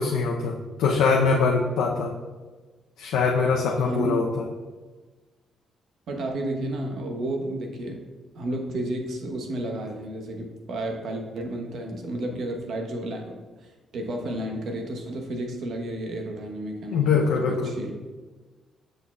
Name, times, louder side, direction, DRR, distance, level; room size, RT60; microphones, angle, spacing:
voice 1, 0.0-2.1 3.0-4.4 16.9-17.7, left 4 dB, 90° left, -1 dB, 0.6 m, -23 dB
voice 2, 3.8-4.2 6.1-8.1 8.3-17.3 17.6-17.9, right 1 dB, 65° right, 2 dB, 1.0 m, -32 dB
6.6 x 6.1 x 2.3 m, 1.3 s
cardioid pair, 90°, 0 cm